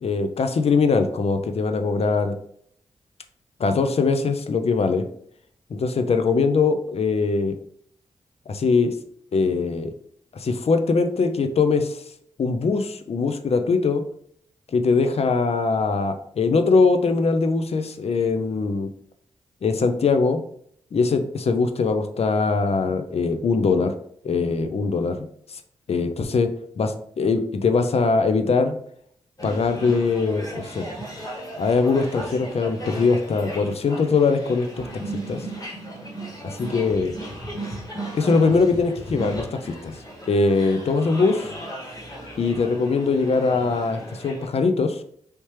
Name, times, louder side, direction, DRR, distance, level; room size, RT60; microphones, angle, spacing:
voice 1, 0.0-2.4 3.6-5.0 5.7-7.5 8.5-8.9 9.3-9.9 10.3-12.0 12.4-14.0 14.7-18.9 19.6-20.4 20.9-23.9 24.2-25.3 25.9-26.5 26.8-28.7 29.4-30.9 31.6-34.9 35.3-35.5 36.4-37.1 38.1-40.0 40.3-41.5 42.4-45.0, left 4 dB, 55° left, 7 dB, 0.5 m, -21 dB
sound 1, 29.4-44.5, right 1 dB, 30° left, 1.5 m, -36 dB
3.3 x 2.8 x 3.2 m, 0.66 s
supercardioid pair, 40°, 12 cm